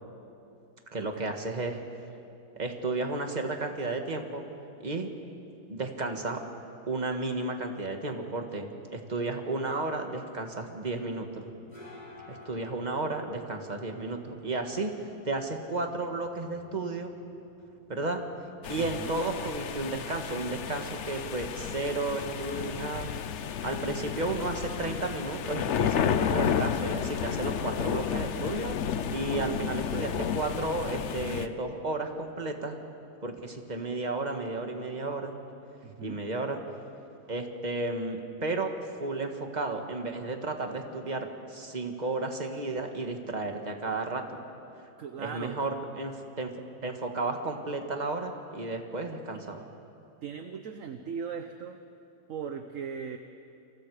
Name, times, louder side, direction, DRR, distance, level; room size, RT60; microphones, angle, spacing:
voice 1, 0.9-1.8 2.6-4.4 4.8-5.1 5.7-6.4 6.9-11.4 12.3-17.1 17.9-18.2 18.7-23.1 23.6-28.7 29.1-32.8 33.2-35.3 36.0-36.6 37.3-44.4 45.2-46.5 46.8-49.7, right 2 dB, 25° right, 4 dB, 1.9 m, -33 dB
sound 1, 11.3-28.8, left 2 dB, 20° left, 7.6 m, -56 dB
sound 2, 18.6-31.5, left 8 dB, 60° left, 0.7 m, -32 dB
voice 2, 18.8-19.2 35.8-36.2 45.0-45.6 50.2-51.8 52.3-53.2, right 6 dB, 50° right, 6 dB, 1.1 m, -38 dB
28.5 x 27.5 x 5.0 m, 2.7 s
omnidirectional pair, 2.1 m